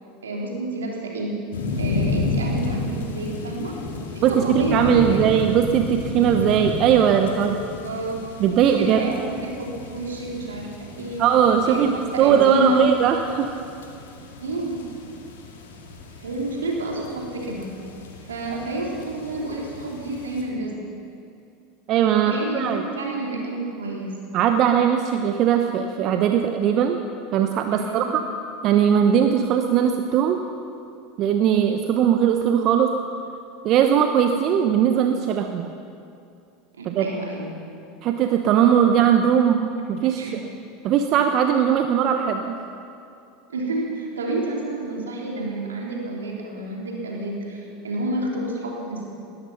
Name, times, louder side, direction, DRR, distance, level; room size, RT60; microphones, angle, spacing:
voice 1, 0.2-1.4 1.8-3.8 4.1-5.3 7.4-7.5 7.8-8.2 8.6-11.2 11.6-11.8 12.1-12.8 14.4-14.9 16.2-17.8 18.3-20.8 22.1-24.3 27.7-28.1 36.7-37.5 40.2-40.4 43.5-49.1, right 2 dB, 80° right, -2 dB, 3.4 m, -29 dB
sound 1, 1.5-20.4, left 3 dB, 75° left, 2.0 m, -32 dB
voice 2, 4.2-7.6 8.4-9.0 11.2-13.5 21.9-22.8 24.3-27.0 27.3-28.2 28.6-30.4 31.2-32.9 33.6-35.7 36.8-37.1 38.0-39.6 39.9-40.2 40.8-42.5, right 9 dB, 50° right, 5 dB, 0.9 m, -19 dB
19.5 x 13.0 x 5.7 m, 2.5 s
hypercardioid pair, 80°, 0 cm